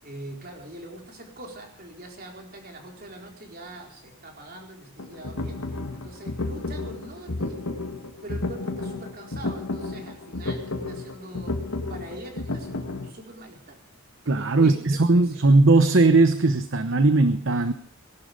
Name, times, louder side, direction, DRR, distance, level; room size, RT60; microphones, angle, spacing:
voice 1, 0.0-7.6 8.2-13.8 14.6-15.5, right 1 dB, 45° right, 1 dB, 4.3 m, -43 dB
sound 1, 5.0-13.1, left 2 dB, 85° left, 1.9 m, -32 dB
voice 2, 14.3-17.7, right 3 dB, 60° right, 10 dB, 0.9 m, -18 dB
19.0 x 11.5 x 5.2 m, 0.66 s
head